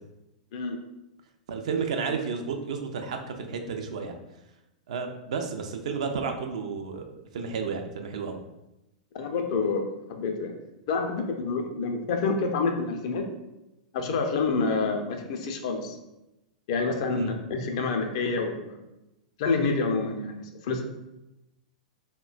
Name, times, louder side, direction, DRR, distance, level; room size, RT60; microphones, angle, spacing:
voice 1, 1.5-4.2 4.9-8.4 17.1-17.3, right 5 dB, 60° right, 4 dB, 0.4 m, -32 dB
voice 2, 9.1-10.5 10.9-13.3 13.9-16.0 16.7-18.8 19.4-20.8, left 4 dB, 50° left, 4 dB, 0.4 m, -28 dB
3.6 x 2.1 x 2.3 m, 0.93 s
figure-of-eight pair, 95°, 4 cm